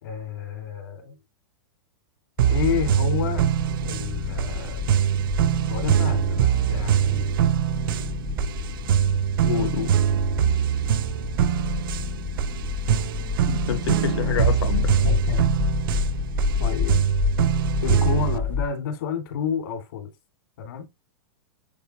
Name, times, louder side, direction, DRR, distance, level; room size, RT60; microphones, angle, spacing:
voice 1, 0.0-1.2 2.5-3.4 3.8-4.9 5.7-7.5 15.0-15.4 16.6-17.1 17.8-20.1 20.6-20.9, left 7 dB, 55° left, 2.6 m, -30 dB
sound 1, 2.4-18.7, left 5 dB, 15° left, 0.5 m, -29 dB
sound 2, 2.4-18.4, right 10 dB, 55° right, 0.4 m, -23 dB
voice 2, 9.4-9.9 13.5-14.9, left 11 dB, 85° left, 0.5 m, -27 dB
8.5 x 3.7 x 2.9 m
supercardioid pair, 175°, 14 cm